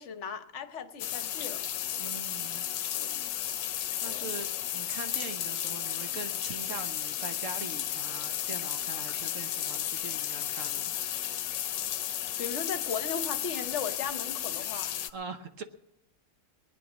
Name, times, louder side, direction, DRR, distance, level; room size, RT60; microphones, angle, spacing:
voice 1, 0.0-1.6 3.0-3.2 4.1-4.3 12.4-14.9, left 6 dB, 50° left, 9 dB, 1.1 m, -37 dB
sound 1, 1.0-15.1, left 11 dB, 80° left, 1.4 m, -33 dB
voice 2, 2.0-2.7 4.0-10.9 15.1-15.6, right 4 dB, 55° right, 8 dB, 1.2 m, -42 dB
19.5 x 10.0 x 6.2 m, 0.86 s
omnidirectional pair, 1.9 m